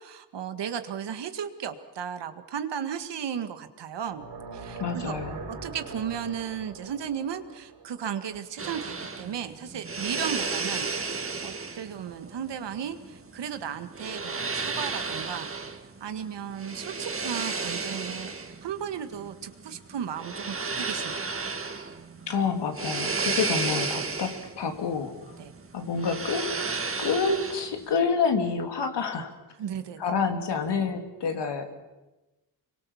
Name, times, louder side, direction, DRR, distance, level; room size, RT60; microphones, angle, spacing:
voice 1, 0.0-15.5 16.0-18.3 18.6-21.5 25.4-25.5 29.6-30.0, right 8 dB, 80° right, 9 dB, 1.9 m, -35 dB
sound 1, 4.0-9.1, right 4 dB, 55° right, 5.3 m, -42 dB
voice 2, 4.8-5.4 22.3-25.4 25.7-26.6 27.0-29.3 30.0-31.8, left 5 dB, 75° left, 5 dB, 2.9 m, -28 dB
sound 2, 8.6-27.9, right 4 dB, 30° right, 2.1 m, -34 dB
26.0 x 23.0 x 7.3 m, 1.1 s
cardioid pair, 75°, 42 cm